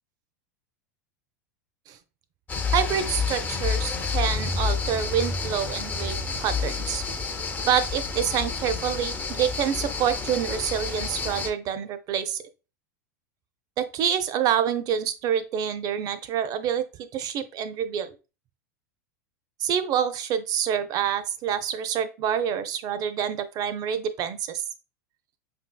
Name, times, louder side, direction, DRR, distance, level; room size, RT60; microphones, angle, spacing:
sound 1, 2.5-11.5, left 5 dB, 20° left, 0.5 m, -29 dB
voice 1, 2.7-7.0 7.6-12.4 13.8-18.1 19.6-24.6, right 9 dB, 40° right, 11 dB, 0.5 m, -27 dB
5.1 x 2.7 x 2.2 m, 0.30 s
hypercardioid pair, 90°, 10 cm